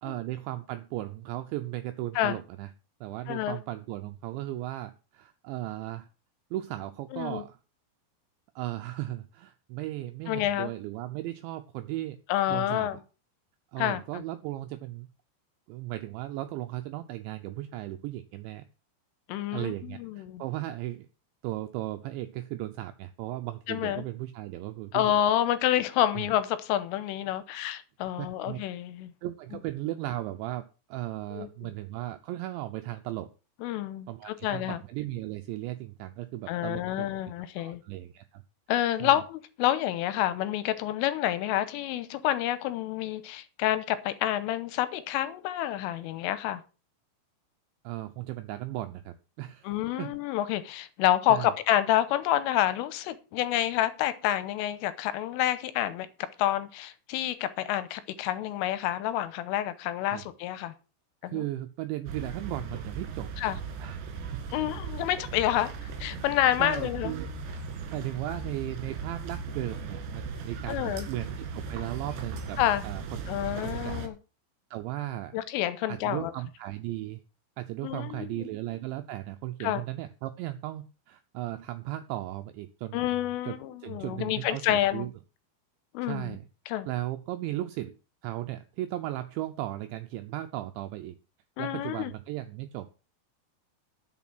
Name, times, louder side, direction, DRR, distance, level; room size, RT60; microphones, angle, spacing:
voice 1, 0.0-2.7 3.0-6.1 6.5-7.6 8.6-12.2 12.5-13.0 13.7-15.1 15.7-18.7 19.5-21.1 21.4-25.1 26.2-26.3 28.2-28.6 29.2-33.3 34.1-37.1 37.6-38.4 39.0-39.2 47.8-50.2 51.3-51.5 60.1-60.3 61.2-63.3 63.8-64.0 64.3-64.5 66.6-67.3 67.9-74.0 74.7-75.4 75.9-77.2 77.6-83.0 83.4-85.1 86.0-86.5 86.9-87.9 88.2-91.2 91.6-92.9, right 15 dB, 85° right, 2.6 m, -36 dB
voice 2, 3.3-3.6 7.1-7.4 10.3-10.7 12.3-13.0 13.8-14.2 19.3-20.4 23.7-24.0 24.9-29.1 31.3-31.7 33.6-34.8 36.5-37.8 38.7-46.6 49.6-56.1 56.4-60.7 61.2-61.4 63.4-63.6 64.5-67.1 70.7-71.1 72.6-72.8 73.3-74.1 75.3-76.3 77.8-78.5 79.6-79.8 82.9-85.1 85.9-86.4 86.7-86.9 91.6-92.1, left 12 dB, 85° left, 3.3 m, -28 dB
sound 1, 62.1-74.1, right 4 dB, 65° right, 3.9 m, -38 dB
11.5 x 6.9 x 6.0 m
omnidirectional pair, 6.0 m